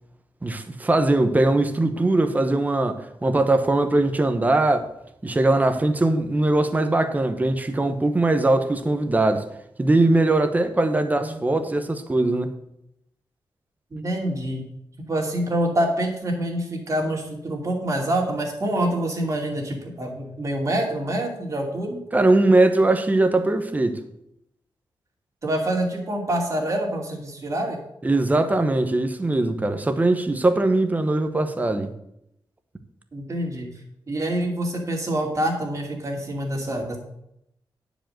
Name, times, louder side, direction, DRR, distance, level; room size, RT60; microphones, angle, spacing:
voice 1, 0.4-4.9 5.2-9.4 9.8-12.6 22.1-24.0 28.0-31.9, right 2 dB, 20° right, 0.9 m, -21 dB
voice 2, 10.9-11.4 13.9-14.6 15.1-22.0 25.4-27.8 33.1-33.7 34.1-37.0, right 1 dB, 35° right, 2.6 m, -26 dB
9.8 x 5.1 x 7.6 m
wide cardioid pair, 130°, 9 cm